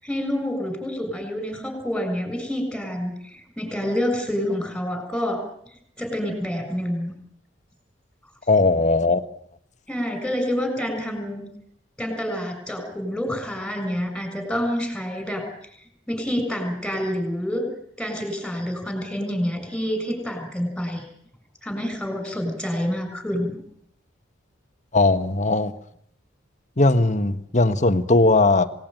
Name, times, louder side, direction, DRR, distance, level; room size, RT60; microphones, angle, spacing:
voice 1, 0.0-5.4 6.0-7.1 9.9-11.5 12.0-15.4 16.1-17.7 18.0-21.1 21.6-23.6, equal, 5° left, 6 dB, 6.8 m, -27 dB
voice 2, 8.5-9.2 24.9-25.7 26.8-28.7, left 2 dB, 40° left, 9 dB, 1.5 m, -18 dB
27.0 x 19.0 x 9.3 m, 0.70 s
head